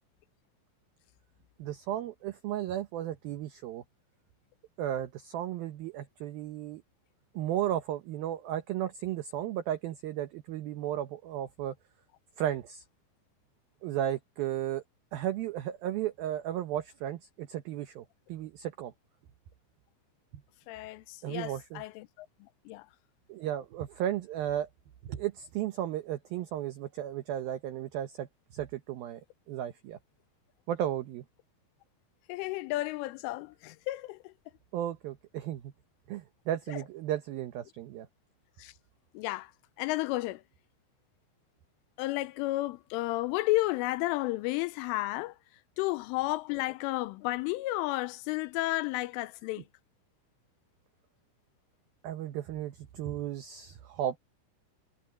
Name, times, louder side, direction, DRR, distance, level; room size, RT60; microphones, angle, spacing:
voice 1, 1.6-3.8 4.8-6.8 7.3-11.8 12.4-12.8 13.8-14.8 15.1-18.9 21.2-21.8 23.3-24.7 25.0-29.2 29.5-30.0 30.7-31.2 34.7-35.7 36.1-38.1 52.0-54.2, right 11 dB, 85° right, 2.1 m, -34 dB
voice 2, 20.7-22.3 22.7-22.9 32.3-34.3 38.6-38.7 39.1-39.5 39.8-40.4 42.0-45.3 45.8-49.6, left 19 dB, 85° left, 3.2 m, -32 dB
omnidirectional pair, 5.7 m